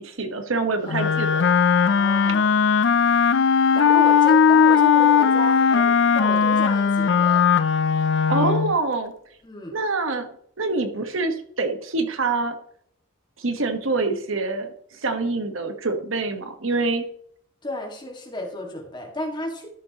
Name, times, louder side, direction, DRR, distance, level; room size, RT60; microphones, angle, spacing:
voice 1, 0.0-1.6 8.3-9.1 9.7-10.3 10.6-12.5 13.4-17.0, right 3 dB, 75° right, 7 dB, 1.2 m, -25 dB
Wind instrument woodwind instrument, 0.9-8.8, left 6 dB, 55° left, 0.4 m, -18 dB
voice 2, 0.9-1.3 1.8-2.5 3.7-7.4 9.4-9.7 17.6-19.7, left 1 dB, 20° left, 2 dB, 1.8 m, -33 dB
13.0 x 6.8 x 2.9 m, 0.65 s
head